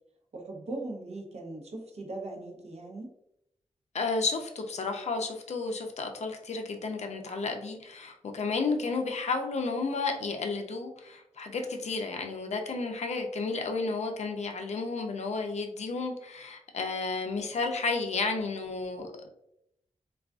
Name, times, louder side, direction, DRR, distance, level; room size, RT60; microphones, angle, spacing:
voice 1, 0.3-3.1, right 2 dB, 60° right, 1 dB, 0.6 m, -39 dB
voice 2, 3.9-19.3, left 4 dB, 65° left, 4 dB, 0.4 m, -32 dB
2.4 x 2.3 x 2.3 m, 0.79 s
wide cardioid pair, 80°, 12 cm